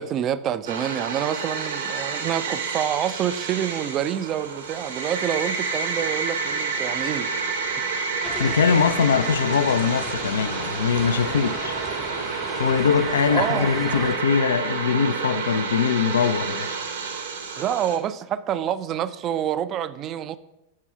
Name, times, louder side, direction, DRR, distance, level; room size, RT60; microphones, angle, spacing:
voice 1, 0.0-7.3 13.3-13.7 17.6-20.4, right 10 dB, 30° right, 0.4 m, -27 dB
sound 1, 0.7-18.0, right 5 dB, 65° right, 1.1 m, -29 dB
sound 2, 8.2-14.2, left 4 dB, 20° left, 0.6 m, -37 dB
voice 2, 8.4-11.8 12.6-16.7, left 6 dB, 65° left, 0.4 m, -22 dB
7.4 x 6.1 x 5.8 m
figure-of-eight pair, 90°, 0 cm